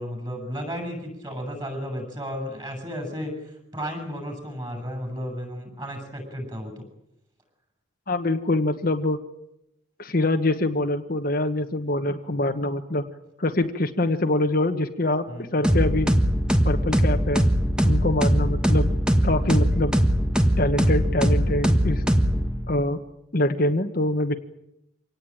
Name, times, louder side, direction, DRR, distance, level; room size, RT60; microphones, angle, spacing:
voice 1, 0.0-6.9 15.3-15.7, equal, 20° right, 4 dB, 7.7 m, -33 dB
voice 2, 8.1-9.2 10.0-13.0 13.4-16.1 16.6-17.4 17.8-18.9 19.2-19.9 20.6-22.0 22.7-23.0 23.3-24.3, left 1 dB, 45° left, 6 dB, 1.3 m, -24 dB
sound 1, 15.6-22.8, equal, 5° right, 1.4 m, -21 dB
25.5 x 18.5 x 8.9 m, 0.85 s
head